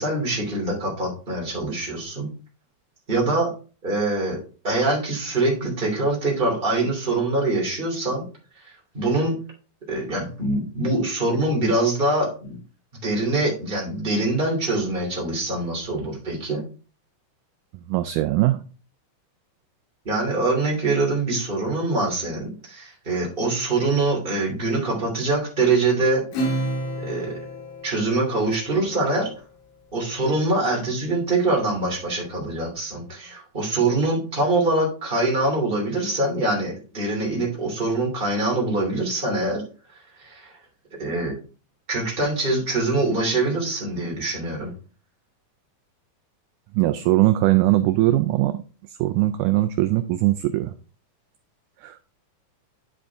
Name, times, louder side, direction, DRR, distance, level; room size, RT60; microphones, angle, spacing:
voice 1, 0.0-2.3 3.1-3.5 3.8-4.4 4.6-8.2 8.9-9.3 9.9-12.6 12.9-16.6 20.0-26.2 27.0-27.3 27.8-29.3 29.9-39.6 40.2-40.5 41.0-41.4 41.9-44.7, right 2 dB, 15° right, -2 dB, 2.6 m, -24 dB
voice 2, 17.7-18.6 46.7-48.6 48.9-50.8 51.8-52.0, right 16 dB, 80° right, 9 dB, 1.9 m, -21 dB
Acoustic guitar / Strum, 26.3-29.2, right 1 dB, 70° left, 3.1 m, -30 dB
9.7 x 5.2 x 3.5 m, 0.36 s
omnidirectional pair, 3.8 m